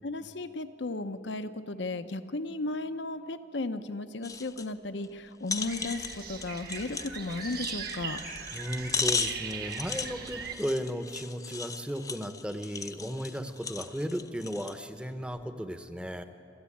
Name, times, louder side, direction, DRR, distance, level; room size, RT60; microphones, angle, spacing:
voice 1, 0.0-8.2, left 2 dB, 70° left, 10 dB, 0.9 m, -35 dB
sound 1, 4.2-4.7 5.0-5.1 5.5-14.8 15.3-15.4, left 5 dB, 20° left, 0.7 m, -37 dB
sound 2, 5.6-10.6, right 6 dB, 55° right, 1.6 m, -39 dB
voice 2, 8.5-16.2, equal, 5° right, 9 dB, 0.9 m, -35 dB
27.0 x 13.0 x 8.6 m, 2.7 s
head